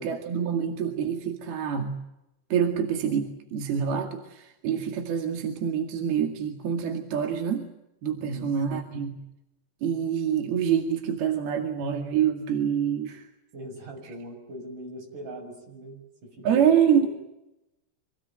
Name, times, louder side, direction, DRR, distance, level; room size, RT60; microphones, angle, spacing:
voice 1, 0.0-1.9 2.5-7.7 8.0-9.2 9.8-13.2 16.4-17.1, right 8 dB, 60° right, 4 dB, 3.7 m, -26 dB
voice 2, 8.2-8.5 13.5-17.1, equal, 40° right, 3 dB, 7.9 m, -41 dB
26.5 x 20.0 x 9.2 m, 0.89 s
omnidirectional pair, 5.6 m